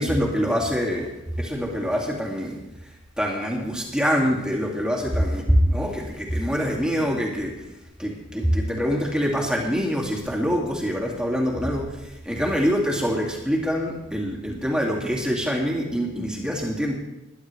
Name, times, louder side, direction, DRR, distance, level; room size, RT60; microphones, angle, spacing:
voice 1, 0.0-7.6 8.0-16.9, equal, 5° right, -2 dB, 2.3 m, -25 dB
21.0 x 11.5 x 3.3 m, 0.93 s
head